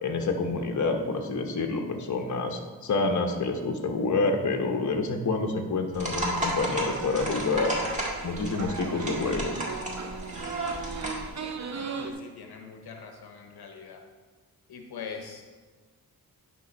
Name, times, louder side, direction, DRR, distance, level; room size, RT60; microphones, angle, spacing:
voice 1, 0.0-7.8 8.2-9.6, left 3 dB, 50° left, 3 dB, 1.0 m, -28 dB
sound 1, 5.9-11.3, right 1 dB, 20° right, 2.0 m, -33 dB
sound 2, 6.2-12.1, right 5 dB, 45° right, 0.7 m, -38 dB
voice 2, 12.0-14.0 14.7-15.4, left 5 dB, 80° left, 3 dB, 0.9 m, -42 dB
10.5 x 3.8 x 5.3 m, 1.4 s
cardioid pair, 75°, 38 cm